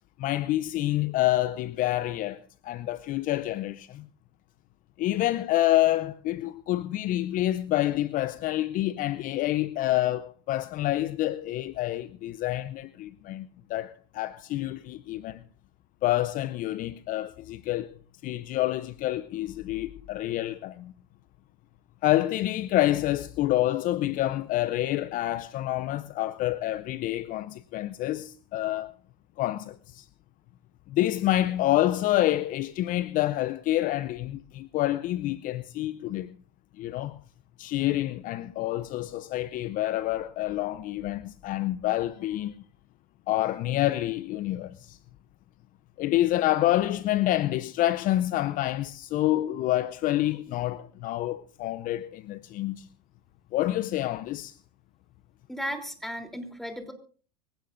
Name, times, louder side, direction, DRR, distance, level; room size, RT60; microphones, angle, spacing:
voice 1, 0.2-4.0 5.0-15.4 16.0-17.9 18.2-20.9 22.0-28.9 29.4-30.1 30.9-36.3 36.8-37.2 37.6-42.5 43.3-45.0 46.0-52.9 53.5-54.6, left 15 dB, 40° left, 0.6 m, -27 dB
voice 2, 55.5-56.9, equal, ahead, 3.3 m, -35 dB
24.5 x 16.0 x 2.6 m
hypercardioid pair, 95°, 20 cm